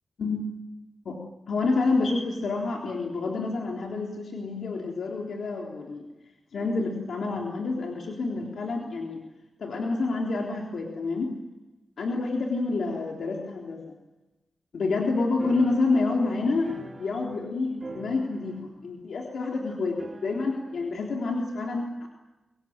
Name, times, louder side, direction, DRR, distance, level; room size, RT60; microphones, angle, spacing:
voice 1, 1.5-6.1 6.5-9.2 9.6-11.4 12.0-13.9 14.7-22.1, left 3 dB, 75° left, 0 dB, 3.8 m, -28 dB
sound 1, 15.4-17.5 17.8-18.8 19.1-19.2 20.0-20.8, right 2 dB, 35° right, 5.3 m, -43 dB
24.5 x 24.0 x 8.9 m, 1.1 s
wide cardioid pair, 115°, 0 cm